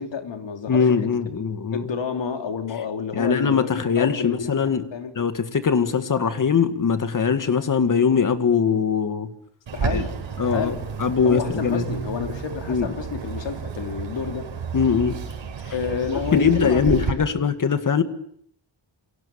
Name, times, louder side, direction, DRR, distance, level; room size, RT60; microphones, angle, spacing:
voice 1, 0.0-1.1 1.7-4.5 4.9-5.3 9.7-10.8 11.2-14.5 15.7-17.0 17.3-17.5, left 6 dB, 70° left, 3.3 m, -30 dB
voice 2, 0.7-1.9 3.2-4.8 5.2-9.3 9.9-10.0 10.4-11.9 12.7-13.0 14.7-15.2 16.3-18.0, left 6 dB, 45° left, 2.0 m, -21 dB
Bird, 9.7-17.1, right 6 dB, 85° right, 4.8 m, -31 dB
29.0 x 23.5 x 7.1 m
wide cardioid pair, 175°, 45 cm